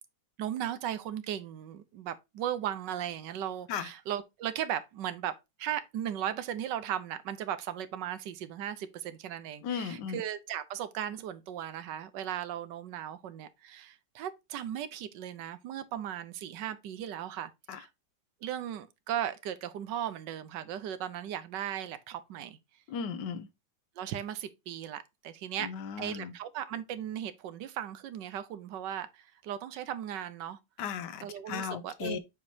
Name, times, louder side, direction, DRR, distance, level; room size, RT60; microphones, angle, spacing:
voice 1, 0.4-5.3 5.6-17.9 18.4-22.6 24.0-25.7 26.0-30.6 31.2-32.2, right 10 dB, 80° right, 1.4 m, -37 dB
voice 2, 9.6-10.2 17.7-17.8 22.9-23.5 25.6-26.3 30.8-32.2, left 7 dB, 75° left, 1.3 m, -36 dB
7.2 x 4.9 x 2.7 m
omnidirectional pair, 1.9 m